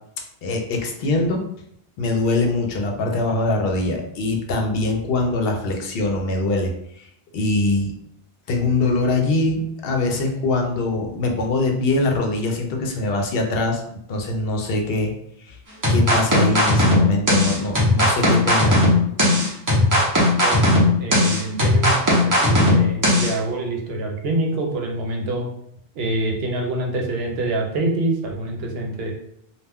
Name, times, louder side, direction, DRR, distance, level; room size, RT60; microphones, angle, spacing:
voice 1, 0.4-1.4 2.0-7.1 7.3-7.9 8.5-13.8 14.1-15.1 15.4-15.6 15.9-18.8, left 2 dB, 70° left, 2 dB, 0.7 m, -23 dB
sound 1, 15.8-23.3, left 1 dB, 20° right, 0.7 m, -17 dB
voice 2, 20.4-25.5 26.0-29.1, right 2 dB, 75° right, 1 dB, 0.8 m, -26 dB
2.3 x 2.1 x 3.4 m, 0.71 s
omnidirectional pair, 1.0 m